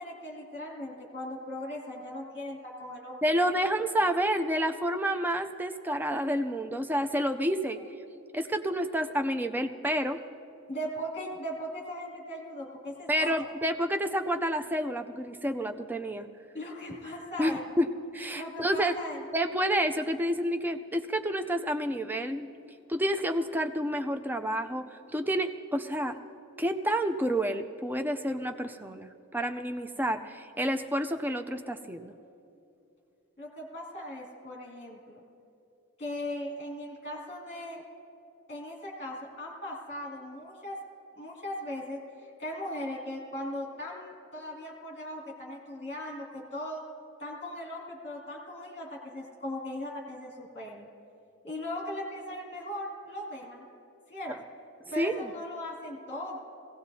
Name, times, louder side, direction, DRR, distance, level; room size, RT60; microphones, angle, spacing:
voice 1, 0.0-3.3 4.0-4.1 10.7-13.3 16.5-17.6 18.3-19.2 33.4-35.2 36.0-37.8 38.5-40.8 41.1-46.8 47.2-50.9 51.4-53.6 54.1-54.3 54.9-56.4, left 1 dB, 30° left, -1 dB, 2.3 m, -38 dB
voice 2, 3.2-7.8 8.3-10.2 13.1-16.3 17.4-17.9 18.1-19.0 19.3-22.5 22.9-26.2 26.6-32.1 55.0-55.3, equal, 10° right, 6 dB, 0.4 m, -29 dB
21.5 x 17.0 x 2.7 m, 2.8 s
head